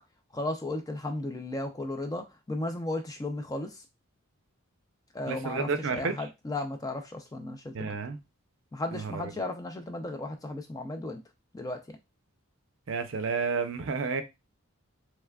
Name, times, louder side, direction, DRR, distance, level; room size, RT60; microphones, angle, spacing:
voice 1, 0.3-3.8 5.1-7.9 8.7-11.2 11.5-11.8, left 2 dB, 15° left, 5 dB, 0.3 m, -35 dB
voice 2, 5.3-6.3 7.7-8.2 8.9-9.4 12.9-14.2, right 4 dB, 60° right, 9 dB, 0.5 m, -31 dB
3.5 x 3.2 x 2.3 m, 0.22 s
head